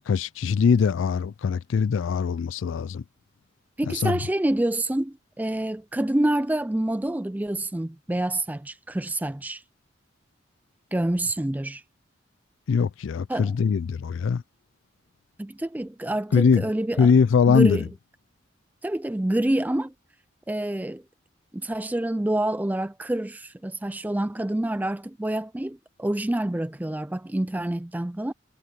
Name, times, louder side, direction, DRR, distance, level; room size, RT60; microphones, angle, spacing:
voice 1, 0.0-3.0 3.9-4.2 12.7-14.4 16.3-16.6 17.0-17.8, left 6 dB, 90° left, 0.4 m, -21 dB
voice 2, 3.8-9.6 10.9-11.8 13.3-13.5 15.4-17.1 17.5-17.8 18.8-19.9 20.5-21.0 21.5-28.3, right 1 dB, 10° right, 0.3 m, -27 dB
head